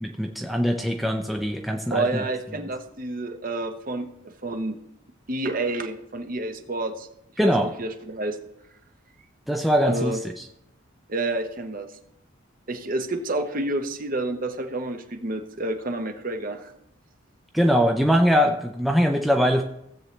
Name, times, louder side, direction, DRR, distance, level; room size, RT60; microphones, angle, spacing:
voice 1, 0.0-2.2 7.4-7.7 9.5-10.2 17.5-19.6, equal, ahead, 2 dB, 0.5 m, -22 dB
voice 2, 1.9-4.8 5.3-7.1 7.4-8.4 9.8-10.2 11.1-12.0 12.7-16.7, right 2 dB, 40° right, 6 dB, 0.9 m, -29 dB
16.0 x 8.0 x 3.2 m, 0.81 s
head